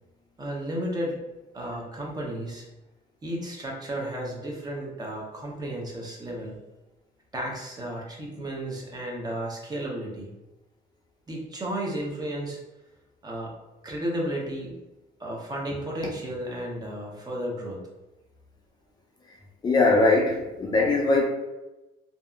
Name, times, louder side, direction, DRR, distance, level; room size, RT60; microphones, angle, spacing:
voice 1, 0.4-1.2 1.5-2.7 3.2-6.6 7.3-10.3 11.3-12.6 13.2-13.5 13.8-14.8 15.2-17.8, right 1 dB, 25° right, -2 dB, 0.7 m, -33 dB
voice 2, 19.6-21.2, left 2 dB, 25° left, -2 dB, 0.4 m, -21 dB
2.6 x 2.3 x 2.4 m, 1.0 s
cardioid pair, 110°, 17 cm